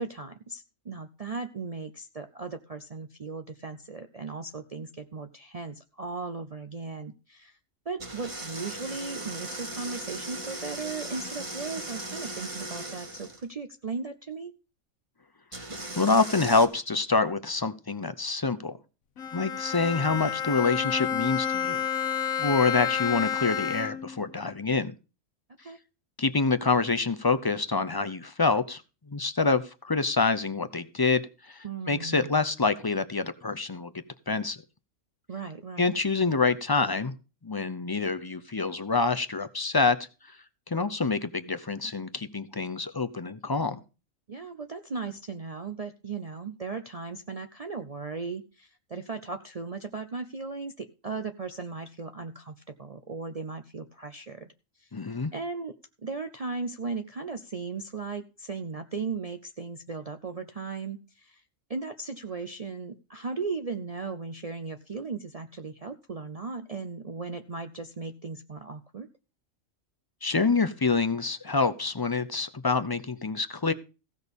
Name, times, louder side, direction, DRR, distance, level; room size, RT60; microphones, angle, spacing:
voice 1, 0.0-7.6 7.9-14.5 25.6-25.8 31.6-32.3 35.3-35.9 44.3-54.5 54.8-54.9 55.3-55.7 56.0-61.4 61.7-69.1, right 4 dB, 40° right, 7 dB, 0.5 m, -37 dB
sound 1, 8.0-13.4 15.5-16.7, right 1 dB, 25° right, 1.4 m, -38 dB
voice 2, 16.0-18.8 19.3-21.8 22.4-24.9 26.2-28.8 29.1-33.9 34.3-34.6 35.8-37.2 37.4-40.0 40.7-43.8 54.9-55.3 70.2-73.7, left 4 dB, 30° left, 10 dB, 0.4 m, -26 dB
Bowed string instrument, 19.2-24.2, left 8 dB, 90° left, 1.6 m, -30 dB
15.5 x 6.3 x 5.2 m, 0.33 s
omnidirectional pair, 1.4 m